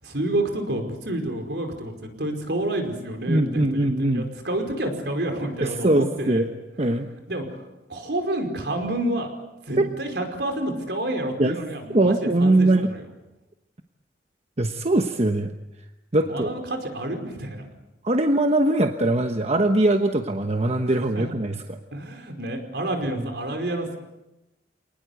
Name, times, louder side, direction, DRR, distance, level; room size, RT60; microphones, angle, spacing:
voice 1, 0.0-6.5 7.3-7.6 7.9-9.3 9.6-13.0 16.2-17.7 21.1-21.2 21.9-24.0, right 1 dB, 70° right, 5 dB, 5.0 m, -29 dB
voice 2, 3.3-4.2 5.6-6.5 6.8-7.1 9.8-9.9 11.4-11.6 11.9-12.9 14.6-15.5 16.1-16.5 18.0-21.8, right 1 dB, 40° right, 6 dB, 1.1 m, -21 dB
27.5 x 19.5 x 8.2 m, 0.97 s
head